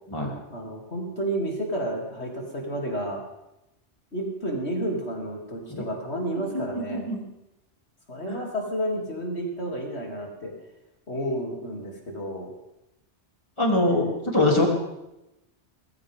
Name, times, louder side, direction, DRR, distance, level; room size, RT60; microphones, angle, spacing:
voice 1, 0.5-3.2 4.1-7.1 8.1-10.5 11.1-12.5 13.9-14.2, right 1 dB, 65° left, -1 dB, 3.5 m, -31 dB
voice 2, 6.5-7.2 8.3-8.4 13.6-14.7, left 2 dB, 25° left, -2 dB, 3.5 m, -24 dB
21.0 x 15.0 x 3.8 m, 0.90 s
omnidirectional pair, 1.2 m